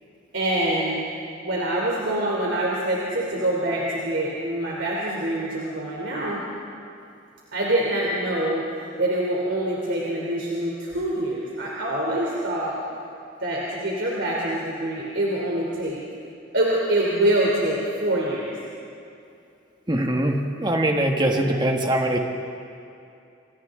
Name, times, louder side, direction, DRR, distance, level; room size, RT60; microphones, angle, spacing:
voice 1, 0.3-1.0 1.4-6.4 7.5-8.7 9.0-12.8 13.4-16.0 16.5-18.6 21.2-21.5, right 1 dB, 70° right, -4 dB, 3.2 m, -25 dB
voice 2, 19.9-22.2, right 1 dB, 20° right, 2 dB, 1.5 m, -22 dB
27.5 x 26.5 x 3.8 m, 2.6 s
head